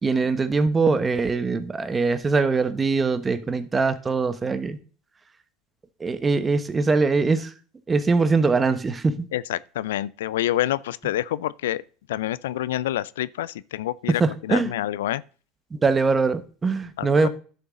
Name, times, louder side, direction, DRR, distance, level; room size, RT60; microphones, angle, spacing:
voice 1, 0.0-4.8 6.0-7.5 7.9-9.3 14.1-14.7 15.8-17.3, right 4 dB, 25° right, 1.2 m, -22 dB
voice 2, 9.3-11.8 12.1-14.2 14.5-15.2 17.0-17.3, left 13 dB, 90° left, 0.4 m, -27 dB
11.0 x 6.9 x 3.8 m
supercardioid pair, 95°, 0 cm